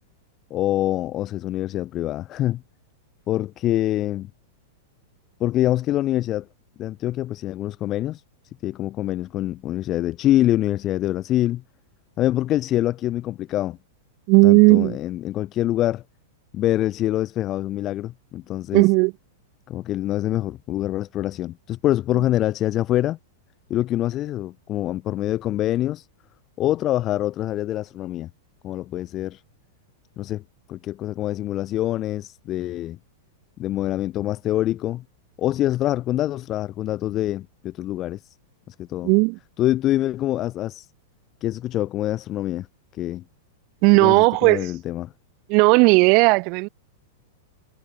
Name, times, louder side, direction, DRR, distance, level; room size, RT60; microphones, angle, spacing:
voice 1, 0.5-2.6 3.3-4.3 5.4-6.5 6.8-8.2 8.6-11.6 12.2-13.8 14.4-16.0 16.5-18.9 19.7-23.2 23.7-26.1 26.6-28.3 28.6-29.4 30.2-30.4 30.7-33.0 33.6-35.0 35.4-38.4 38.7-39.1 39.6-40.9 41.4-42.7 42.9-43.2 43.9-45.1, left 14 dB, 30° left, 3.4 m, -25 dB
voice 2, 14.3-15.0 18.7-19.1 39.0-39.4 43.8-44.7 45.5-46.7, right 31 dB, 40° right, 1.8 m, -15 dB
supercardioid pair, 150°, 0 cm